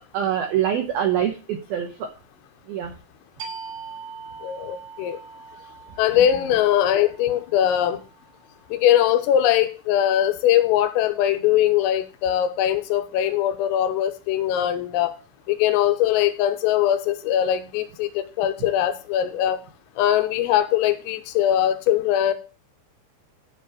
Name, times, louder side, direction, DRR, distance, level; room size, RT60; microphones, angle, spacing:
voice 1, 0.0-2.1 2.7-2.9, right 10 dB, 85° right, 4 dB, 2.1 m, -25 dB
sound 1, 3.4-8.7, right 5 dB, 60° right, 3.6 m, -42 dB
voice 2, 4.4-5.2 6.0-8.0 8.7-15.2 15.5-19.6 20.0-22.3, left 11 dB, 90° left, 9 dB, 3.5 m, -21 dB
13.0 x 5.3 x 4.2 m, 0.34 s
omnidirectional pair, 5.8 m